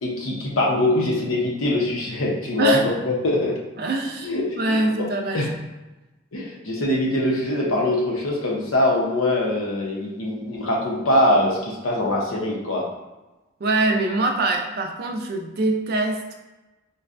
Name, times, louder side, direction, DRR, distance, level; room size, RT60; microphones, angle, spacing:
voice 1, 0.0-3.6 4.2-5.1 5.3-5.5 6.3-12.9, left 1 dB, 80° left, -2 dB, 0.7 m, -23 dB
voice 2, 3.8-5.5 13.6-16.3, right 2 dB, 50° right, 4 dB, 0.3 m, -24 dB
3.9 x 2.2 x 2.4 m, 1.1 s
head